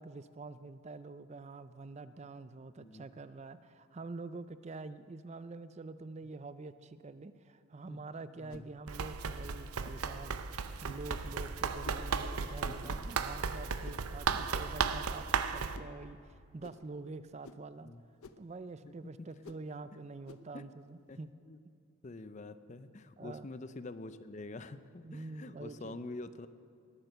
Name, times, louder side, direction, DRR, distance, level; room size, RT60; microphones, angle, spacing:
voice 1, 0.0-17.9 18.4-21.3 21.6-21.7 23.2-23.5 25.0-26.0, right 3 dB, 30° right, 13 dB, 0.4 m, -46 dB
voice 2, 2.8-3.1 7.9-8.0 8.4-8.7 12.7-12.9 14.3-14.4 17.8-18.0 18.8-18.9 20.5-20.7 21.1-21.2 21.5-21.6 22.0-26.5, left 2 dB, 30° left, 12 dB, 0.5 m, -46 dB
sound 1, 8.5-8.7 9.8-10.1 10.9-11.1 11.8-12.1 12.9-13.1 13.8-14.1 14.8-15.1 15.7-15.9 16.6-16.9 17.4-17.7 18.2-18.5 19.4-19.7 20.3-20.5, left 3 dB, 70° left, 0.6 m, -52 dB
Run, 8.9-15.8, right 5 dB, 80° right, 0.6 m, -35 dB
19.5 x 9.0 x 6.8 m, 2.4 s
head